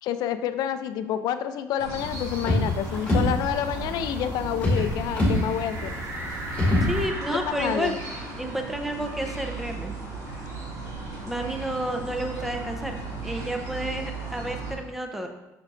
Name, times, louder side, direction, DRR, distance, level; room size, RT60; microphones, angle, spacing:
voice 1, 0.0-5.9 7.4-8.0, left 10 dB, 70° left, 10 dB, 0.4 m, -28 dB
sound 1, 1.8-14.7, right 3 dB, 60° right, 2.0 m, -36 dB
sound 2, 2.0-7.1, left 1 dB, 20° left, 2.2 m, -26 dB
sound 3, 5.2-10.4 10.8-10.9 11.2-12.9, right 2 dB, 35° right, 1.1 m, -40 dB
voice 2, 6.8-8.0 8.4-9.9 11.2-15.3, right 1 dB, 5° right, 4 dB, 0.6 m, -31 dB
6.4 x 6.1 x 2.5 m, 1.0 s
cardioid pair, 135°, 7 cm